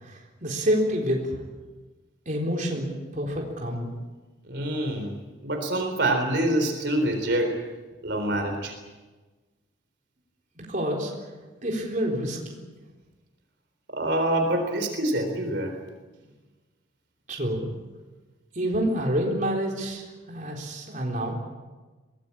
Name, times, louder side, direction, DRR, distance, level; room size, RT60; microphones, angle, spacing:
voice 1, 0.0-1.3 2.3-2.9 3.1-4.0 10.6-11.1 11.6-12.6 17.3-17.7 18.5-21.3, equal, 40° right, -1 dB, 4.1 m, -28 dB
voice 2, 4.4-5.2 5.4-7.6 8.0-8.7 13.9-15.8, right 1 dB, 60° right, 4 dB, 4.0 m, -26 dB
23.5 x 19.0 x 8.6 m, 1.2 s
head